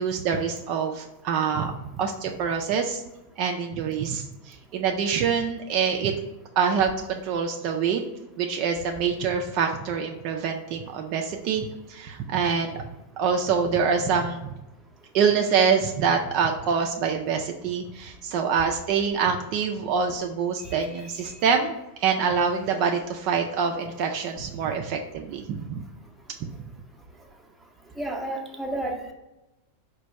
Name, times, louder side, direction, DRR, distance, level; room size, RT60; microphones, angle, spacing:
voice 1, 0.0-3.0 3.4-6.1 6.6-8.0 8.4-12.9 13.2-14.5 15.1-25.8, right 6 dB, 45° right, 2 dB, 0.4 m, -25 dB
voice 2, 20.6-21.1 28.0-29.1, right 1 dB, 5° right, 0 dB, 0.7 m, -32 dB
5.0 x 2.2 x 4.4 m, 0.98 s
figure-of-eight pair, 90°, 0 cm